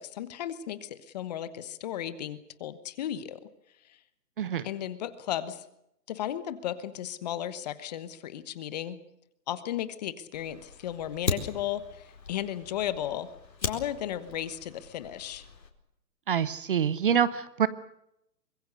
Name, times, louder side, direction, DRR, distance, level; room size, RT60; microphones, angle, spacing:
voice 1, 0.0-3.4 4.6-5.6 6.1-9.0 9.5-13.3 13.6-15.4, left 11 dB, 25° left, 14 dB, 1.2 m, -35 dB
Fire, 10.3-15.7, left 4 dB, 85° left, 4.4 m, -38 dB
voice 2, 16.3-17.7, right 8 dB, 35° right, 16 dB, 0.9 m, -26 dB
25.0 x 22.0 x 6.6 m, 0.80 s
hypercardioid pair, 150°, 49 cm